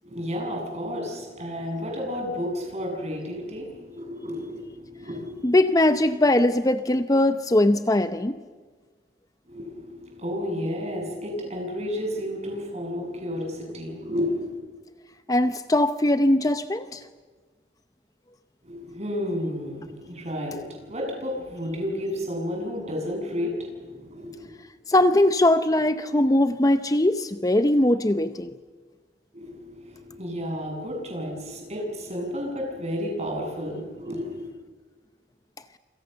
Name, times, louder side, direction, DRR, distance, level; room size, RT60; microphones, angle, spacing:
voice 1, 0.0-5.4 9.5-14.6 18.6-24.5 29.3-34.5, equal, 40° right, 1 dB, 8.0 m, -32 dB
voice 2, 5.4-8.4 15.3-17.0 24.9-28.5, left 1 dB, 20° left, 10 dB, 0.8 m, -21 dB
28.0 x 27.0 x 6.9 m, 1.4 s
head